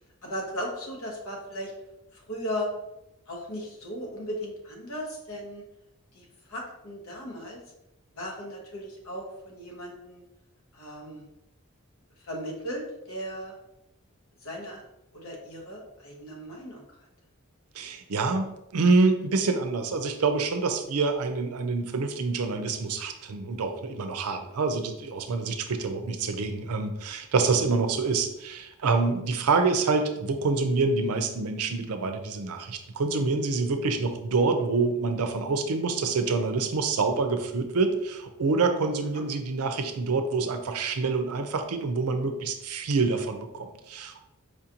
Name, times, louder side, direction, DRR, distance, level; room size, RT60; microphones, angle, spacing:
voice 1, 0.2-1.7 2.1-2.7 3.3-5.6 6.1-7.6 8.1-10.2 10.7-11.3 12.2-13.5 14.4-14.8 15.1-16.8 26.3-26.5 39.1-39.2, equal, 75° left, -1 dB, 1.1 m, -37 dB
voice 2, 17.8-44.2, right 4 dB, 85° right, 7 dB, 0.5 m, -26 dB
4.9 x 2.6 x 2.8 m, 0.87 s
head